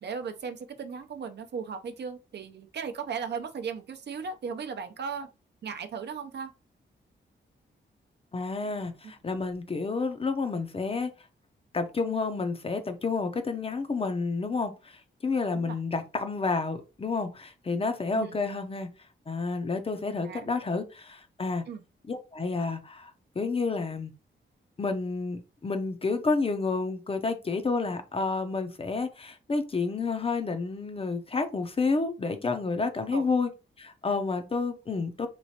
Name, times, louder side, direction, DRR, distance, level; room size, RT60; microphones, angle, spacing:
voice 1, 0.0-5.3 5.6-6.5 15.5-15.8 18.1-18.4 20.2-20.5 21.7-21.8 33.1-33.3, right 6 dB, 60° right, 0.6 m, -36 dB
voice 2, 8.3-11.1 11.7-18.9 19.3-21.6 22.1-24.1 24.8-33.5 33.8-35.3, left 4 dB, 30° left, 0.5 m, -30 dB
3.1 x 3.0 x 2.8 m
cardioid pair, 100°, 20 cm